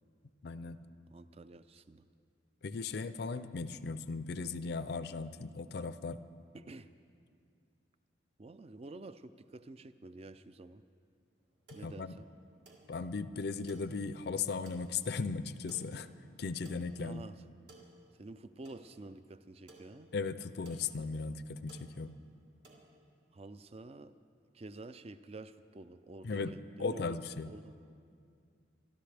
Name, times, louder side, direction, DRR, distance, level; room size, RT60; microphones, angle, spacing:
voice 1, 0.4-0.8 2.6-6.2 11.7-12.1 12.9-16.1 16.4-17.2 20.1-22.2 26.2-27.5, left 4 dB, 60° left, 13 dB, 0.4 m, -37 dB
voice 2, 1.1-2.1 6.5-6.9 8.4-10.8 11.7-12.3 17.0-17.4 18.2-20.1 23.3-24.1 24.5-26.4 26.8-27.2 27.5-27.7, right 2 dB, 35° right, 13 dB, 0.4 m, -49 dB
sound 1, 11.4-22.9, right 2 dB, 60° right, 2.0 m, -61 dB
25.0 x 12.5 x 3.4 m, 2.3 s
head